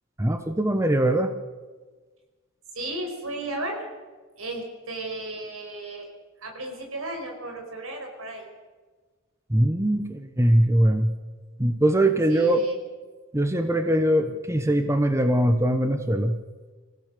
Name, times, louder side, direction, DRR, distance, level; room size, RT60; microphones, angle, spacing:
voice 1, 0.2-1.3 9.5-11.1 11.6-12.6 13.3-16.4, right 1 dB, 15° right, 7 dB, 1.0 m, -21 dB
voice 2, 2.7-3.8 4.4-6.1 6.4-8.5 12.3-12.8, right 2 dB, 70° right, 2 dB, 5.8 m, -34 dB
27.0 x 16.0 x 6.8 m, 1.4 s
head